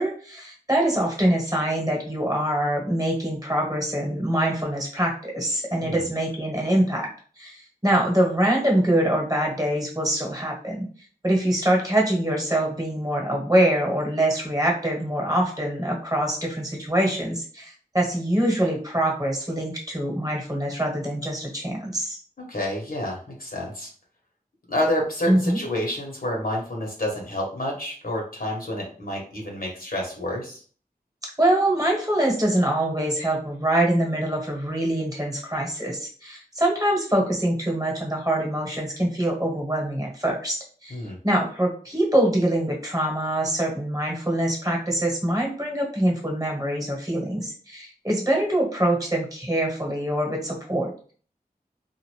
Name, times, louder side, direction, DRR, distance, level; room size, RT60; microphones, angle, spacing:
voice 1, 0.0-7.1 7.4-10.8 11.2-22.2 25.3-25.6 31.4-51.1, right 1 dB, 20° right, -1 dB, 1.2 m, -24 dB
voice 2, 22.5-23.9 24.7-30.6 40.9-41.2, left 1 dB, 65° left, -1 dB, 1.1 m, -29 dB
2.5 x 2.5 x 3.1 m, 0.43 s
wide cardioid pair, 50°, 16 cm